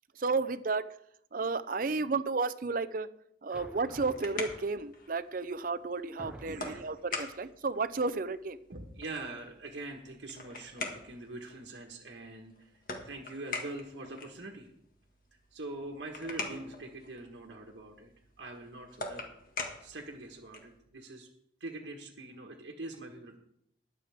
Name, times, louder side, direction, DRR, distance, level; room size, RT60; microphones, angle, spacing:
voice 1, 0.2-0.8 1.3-3.1 3.4-8.6, right 4 dB, 50° right, 13 dB, 0.6 m, -32 dB
sound 1, 3.5-5.0 5.7-5.8 6.2-7.0, equal, 5° right, 0.9 m, -49 dB
sound 2, 3.7-20.8, left 3 dB, 50° left, 1.9 m, -45 dB
voice 2, 6.4-6.8 8.7-12.7 13.0-14.7 15.5-18.1 18.4-19.3 19.8-21.3 21.6-23.4, right 2 dB, 80° right, 0 dB, 1.5 m, -43 dB
21.5 x 7.6 x 3.6 m, 0.74 s
head